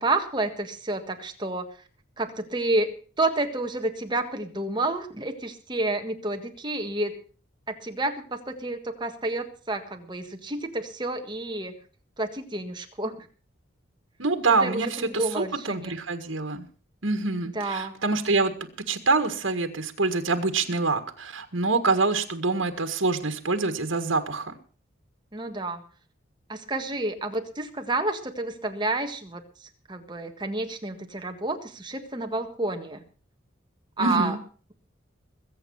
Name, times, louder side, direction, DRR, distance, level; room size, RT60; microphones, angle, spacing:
voice 1, 0.0-1.7 2.2-7.2 7.7-11.7 12.2-13.1 14.5-16.0 17.5-18.0 25.3-25.8 26.5-33.0 34.0-34.4, right 2 dB, 25° right, 5 dB, 1.6 m, -30 dB
voice 2, 14.2-16.6 17.0-18.5 18.9-24.5 34.0-34.4, right 3 dB, 75° right, 7 dB, 1.7 m, -25 dB
21.5 x 8.3 x 5.6 m, 0.40 s
head